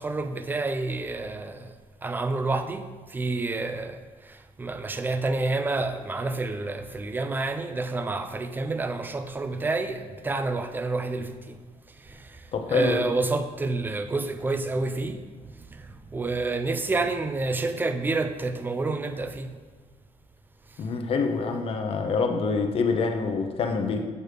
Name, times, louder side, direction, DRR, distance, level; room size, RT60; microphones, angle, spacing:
voice 1, 0.0-1.7 2.0-2.9 3.1-4.0 4.6-11.6 12.1-12.4 12.7-15.2 15.8-15.9 16.1-19.5, right 3 dB, 15° right, 0.4 m, -28 dB
voice 2, 12.5-13.1 20.8-24.1, left 4 dB, 50° left, 0.7 m, -26 dB
6.5 x 6.0 x 3.3 m
cardioid pair, 135°, 13 cm